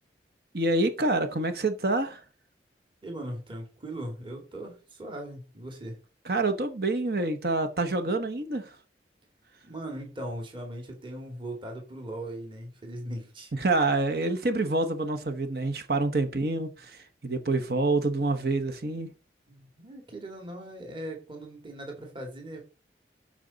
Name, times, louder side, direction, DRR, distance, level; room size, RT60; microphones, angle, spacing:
voice 1, 0.5-2.2 6.2-8.7 13.5-19.1, right 2 dB, 60° right, 1.0 m, -27 dB
voice 2, 3.0-6.0 9.6-13.5 19.5-22.6, right 1 dB, 30° right, 2.1 m, -39 dB
13.0 x 5.1 x 4.0 m
head